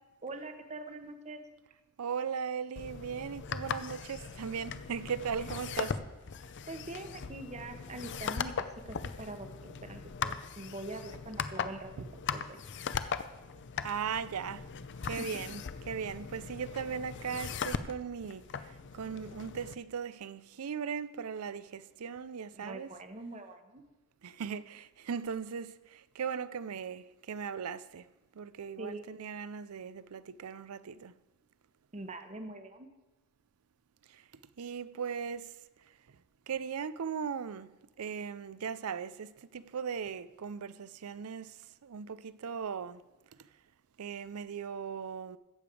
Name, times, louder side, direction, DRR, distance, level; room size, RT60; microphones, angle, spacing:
voice 1, 0.2-1.4 6.7-11.9 12.3-12.6 15.2-15.3 22.5-23.8 28.8-29.1 31.9-32.9, right 2 dB, 30° right, 1.1 m, -43 dB
voice 2, 2.0-6.0 12.0-12.1 13.8-14.7 15.0-18.4 18.9-22.9 24.2-25.7 26.2-28.0 28.4-31.1 34.6-35.5 36.5-37.7 38.0-41.5 41.8-43.0 44.0-45.4, right 6 dB, 80° right, 0.5 m, -38 dB
sound 1, 2.8-19.7, left 6 dB, 55° left, 0.6 m, -39 dB
14.5 x 5.2 x 8.4 m
head